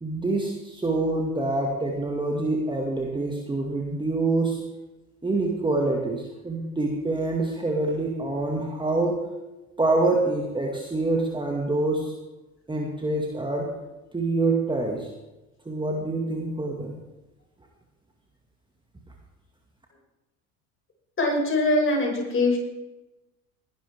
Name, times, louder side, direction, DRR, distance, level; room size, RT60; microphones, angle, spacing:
voice 1, 0.0-4.6 5.2-9.2 9.8-12.1 12.7-13.7 14.1-15.1 15.7-16.9, right 2 dB, 10° right, 0 dB, 2.1 m, -26 dB
voice 2, 21.2-22.6, left 2 dB, 30° left, 0 dB, 6.0 m, -22 dB
20.0 x 12.0 x 3.7 m, 1.0 s
figure-of-eight pair, 70°, 43 cm